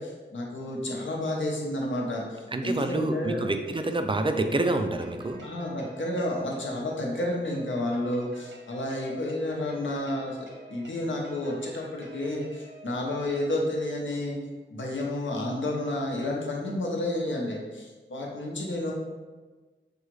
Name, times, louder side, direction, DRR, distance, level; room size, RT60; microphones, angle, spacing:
voice 1, 0.0-3.5 5.4-10.4 10.7-14.4 14.7-18.9, left 1 dB, 85° left, -1 dB, 0.8 m, -31 dB
voice 2, 2.5-5.4, right 2 dB, 25° right, 6 dB, 0.4 m, -27 dB
sound 1, 5.0-13.4, equal, 65° right, 0.8 m, -50 dB
6.0 x 2.4 x 3.2 m, 1.3 s
wide cardioid pair, 60°, 19 cm